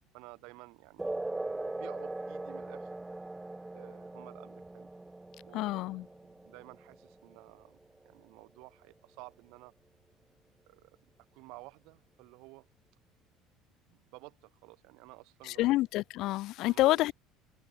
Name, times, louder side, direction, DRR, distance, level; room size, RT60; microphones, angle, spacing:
voice 1, 0.1-3.0 3.7-4.9 5.4-9.7 10.7-11.0 11.3-12.7 13.9-15.9 16.6-17.1, right 25 dB, 60° right, 7.4 m, -53 dB
sound 1, 1.0-8.0, right 2 dB, 5° right, 0.5 m, -41 dB
voice 2, 5.5-6.0 15.5-17.1, left 17 dB, 45° left, 0.4 m, -28 dB
open air
cardioid pair, 180°, 0 cm